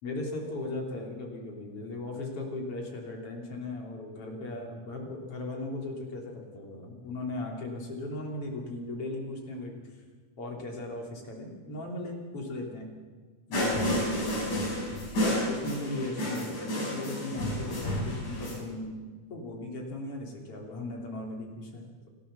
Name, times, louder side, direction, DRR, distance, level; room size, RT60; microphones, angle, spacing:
voice 1, 0.0-9.8 10.4-12.9 13.5-14.3 15.2-19.0 19.3-22.1, left 2 dB, 45° left, 0 dB, 4.0 m, -37 dB
sound 1, 13.5-18.5, left 1 dB, 70° left, 7.5 m, -30 dB
29.0 x 13.0 x 6.9 m, 1.4 s
omnidirectional pair, 3.5 m